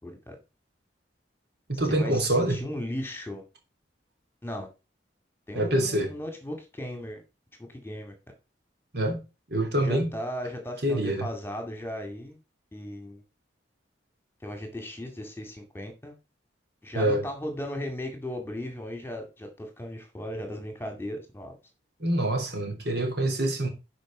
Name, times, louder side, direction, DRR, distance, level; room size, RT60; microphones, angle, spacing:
voice 1, 0.0-0.4 1.9-3.4 4.4-4.7 5.5-7.2 7.7-8.1 9.7-12.4 12.7-13.2 14.4-16.2 16.8-21.5, left 1 dB, 15° left, 2.2 m, -36 dB
voice 2, 1.7-2.6 5.5-6.1 8.9-9.2 9.5-10.1 10.8-11.3 16.9-17.2 22.0-23.7, right 1 dB, 60° right, 3.4 m, -26 dB
11.5 x 5.1 x 5.1 m
head